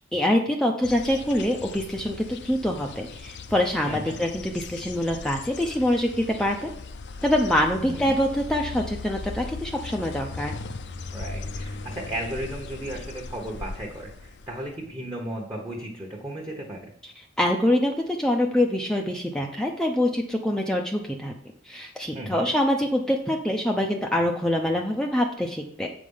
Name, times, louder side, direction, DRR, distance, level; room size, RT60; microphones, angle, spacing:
voice 1, 0.1-6.7 7.2-10.5 17.4-21.3 21.7-25.9, left 1 dB, 5° left, 1 dB, 0.6 m, -25 dB
sound 1, 0.8-14.9, left 3 dB, 60° left, 0.6 m, -38 dB
voice 2, 3.8-4.2 7.8-8.2 11.1-16.9 22.1-22.5, right 1 dB, 20° right, -2 dB, 1.1 m, -35 dB
7.8 x 5.0 x 5.5 m, 0.69 s
head